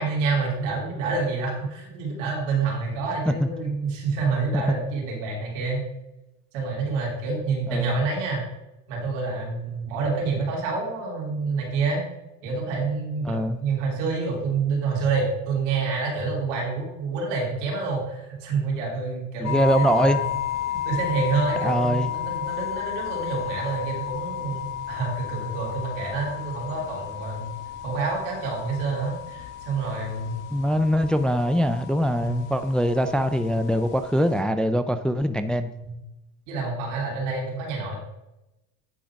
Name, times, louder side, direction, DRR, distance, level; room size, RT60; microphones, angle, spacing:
voice 1, 0.0-5.8 6.5-8.4 8.9-12.0 12.4-20.3 20.7-27.5 27.8-30.4 32.2-32.4 35.8-36.0 36.5-38.0, right 4 dB, 90° right, -2 dB, 3.3 m, -28 dB
voice 2, 13.3-13.6 19.4-20.2 21.6-22.1 30.5-35.7, equal, ahead, 9 dB, 0.4 m, -23 dB
sound 1, 19.4-34.4, left 11 dB, 60° left, 1.4 m, -33 dB
10.0 x 3.9 x 5.9 m, 0.94 s
supercardioid pair, 105°, 36 cm